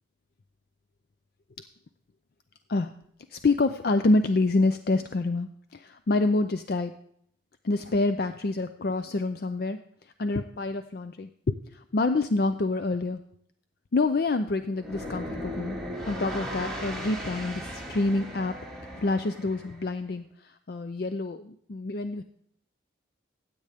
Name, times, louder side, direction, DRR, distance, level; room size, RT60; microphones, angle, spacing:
voice 1, 3.3-7.0 7.6-9.8 10.2-13.2 13.9-15.8 16.1-18.5 18.9-22.2, left 2 dB, 50° left, 10 dB, 0.4 m, -27 dB
sound 1, 14.7-19.9, equal, 5° left, 2.1 m, -37 dB
15.5 x 8.7 x 3.5 m, 0.69 s
head